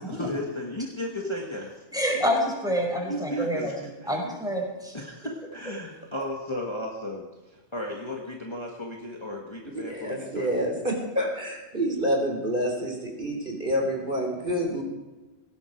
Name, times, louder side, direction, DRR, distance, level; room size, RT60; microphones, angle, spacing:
voice 1, 0.1-1.9 2.1-2.2 3.0-4.4 4.9-10.5, left 1 dB, 20° left, -1 dB, 1.8 m, -35 dB
voice 2, 1.9-5.0, equal, 5° right, -1 dB, 5.4 m, -27 dB
voice 3, 9.9-14.8, equal, 40° right, 1 dB, 3.7 m, -28 dB
18.5 x 17.0 x 4.7 m, 1.2 s
omnidirectional pair, 1.3 m